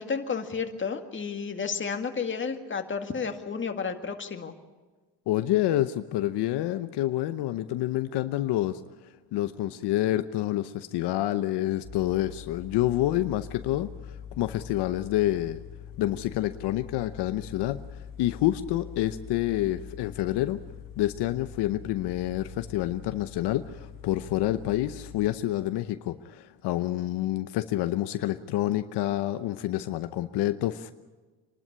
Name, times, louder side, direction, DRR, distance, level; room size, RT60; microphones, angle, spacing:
voice 1, 0.0-4.5, left 5 dB, 30° left, 5 dB, 2.0 m, -32 dB
voice 2, 5.3-8.8 9.3-15.6 16.0-20.6 21.0-30.9, left 14 dB, 80° left, 10 dB, 0.9 m, -28 dB
sound 1, 11.8-25.2, left 8 dB, 50° left, 2.1 m, -44 dB
26.0 x 12.0 x 10.0 m, 1.3 s
cardioid pair, 105°, 40 cm